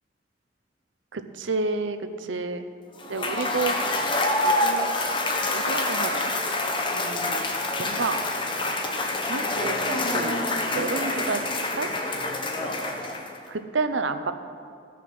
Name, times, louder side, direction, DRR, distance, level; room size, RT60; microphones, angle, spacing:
voice 1, 1.1-2.7 3.0-3.7 4.4-4.9 5.4-6.6 6.9-7.5 7.8-8.2 9.3-10.4 10.7-11.4 11.8-11.9 13.5-14.3, right 4 dB, 80° right, 9 dB, 0.7 m, -30 dB
Cheering / Applause / Crowd, 3.0-13.5, left 2 dB, 25° left, 0.8 m, -26 dB
15.0 x 5.9 x 6.0 m, 2.3 s
head